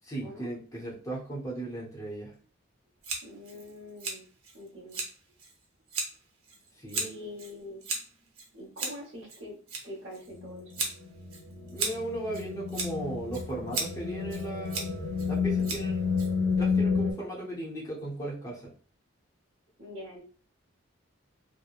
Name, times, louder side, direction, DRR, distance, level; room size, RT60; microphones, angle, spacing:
voice 1, 0.1-2.3 6.7-7.0 11.7-14.9 15.2-16.2 16.6-18.6, right 2 dB, 15° left, -4 dB, 0.7 m, -37 dB
Scissors, 3.0-16.7, right 3 dB, 90° right, 0.7 m, -38 dB
voice 2, 3.2-4.3 4.5-5.0 6.9-7.8 8.5-9.6 9.8-10.9 19.8-20.2, left 1 dB, 60° right, -2 dB, 1.0 m, -44 dB
sound 1, 10.4-17.1, left 5 dB, 65° left, 0.6 m, -30 dB
2.9 x 2.1 x 2.3 m, 0.41 s
head